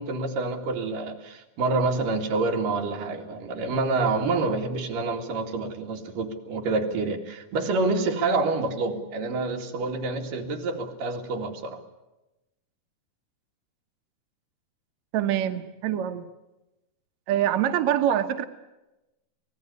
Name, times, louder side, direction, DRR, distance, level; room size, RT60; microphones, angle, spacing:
voice 1, 0.0-11.8, right 3 dB, 90° right, 2 dB, 3.8 m, -27 dB
voice 2, 15.1-16.2 17.3-18.4, right 10 dB, 65° right, 7 dB, 2.2 m, -24 dB
25.5 x 19.0 x 9.5 m, 1.0 s
omnidirectional pair, 3.7 m